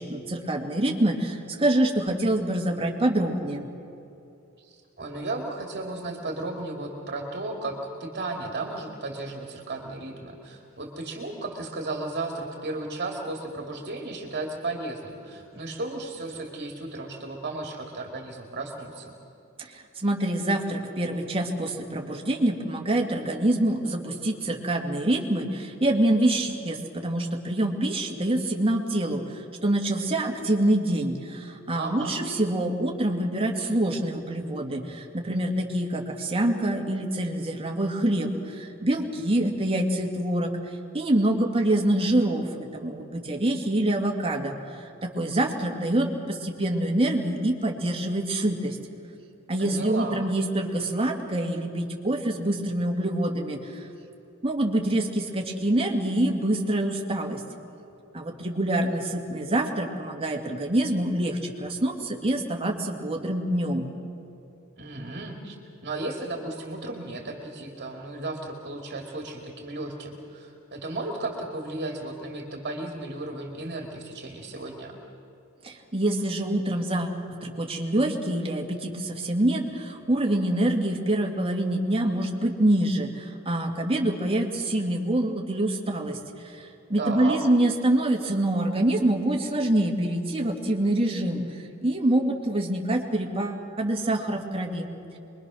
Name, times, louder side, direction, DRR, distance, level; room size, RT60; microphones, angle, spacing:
voice 1, 0.0-3.7 19.6-40.5 40.9-48.8 49.5-53.8 54.4-57.4 58.1-63.9 75.6-77.1 77.4-86.2 86.4-94.9, right 1 dB, 25° right, 1 dB, 2.3 m, -26 dB
voice 2, 4.6-19.1 31.7-32.1 49.6-50.2 64.8-65.6 65.8-75.0 87.0-87.4, right 2 dB, 45° right, 1 dB, 2.4 m, -34 dB
25.5 x 22.5 x 6.3 m, 2.8 s
head